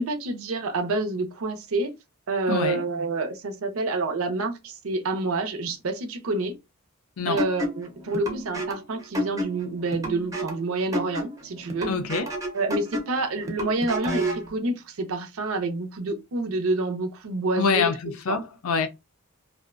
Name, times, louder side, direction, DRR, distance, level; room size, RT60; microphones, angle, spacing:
voice 1, 0.0-1.9 2.3-6.6 7.3-11.9 12.5-17.9 18.3-18.4, right 2 dB, 80° right, 0.5 m, -28 dB
voice 2, 2.5-2.8 7.2-7.4 11.9-12.3 17.6-18.9, left 5 dB, 85° left, 0.5 m, -25 dB
sound 1, 7.4-14.5, equal, 15° right, 0.5 m, -31 dB
2.5 x 2.1 x 2.4 m
head